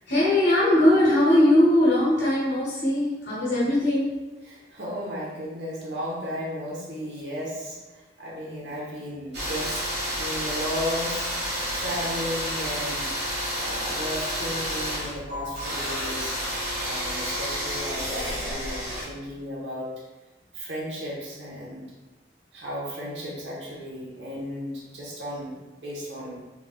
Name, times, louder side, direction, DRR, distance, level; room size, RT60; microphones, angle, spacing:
voice 1, 0.1-4.2 9.9-10.0, left 1 dB, 85° left, -9 dB, 1.2 m, -20 dB
voice 2, 4.4-9.9 10.2-11.4 11.7-13.1 13.5-16.3 16.8-19.9 20.5-21.9 22.5-26.4, equal, 90° right, -6 dB, 1.2 m, -34 dB
sound 1, 9.3-19.0, equal, 70° right, 1.5 m, -30 dB
3.8 x 3.5 x 2.3 m, 1.2 s
head